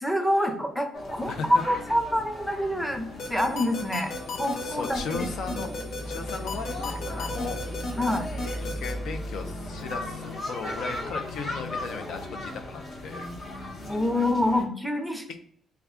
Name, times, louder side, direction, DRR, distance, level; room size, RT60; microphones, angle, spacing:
voice 1, 0.0-5.3 8.0-8.3 13.9-15.3, left 1 dB, ahead, 5 dB, 0.6 m, -26 dB
sound 1, 0.9-14.6, left 2 dB, 50° left, 1.0 m, -38 dB
voice 2, 1.3-1.6 4.6-5.7 6.1-7.6 8.6-13.3, left 5 dB, 75° left, 6 dB, 0.4 m, -36 dB
sound 2, 3.2-8.9, left 3 dB, 90° left, 0.8 m, -33 dB
sound 3, 4.5-10.4, right 1 dB, 50° right, 0.4 m, -38 dB
3.3 x 2.3 x 3.6 m, 0.65 s
cardioid pair, 90°, 0 cm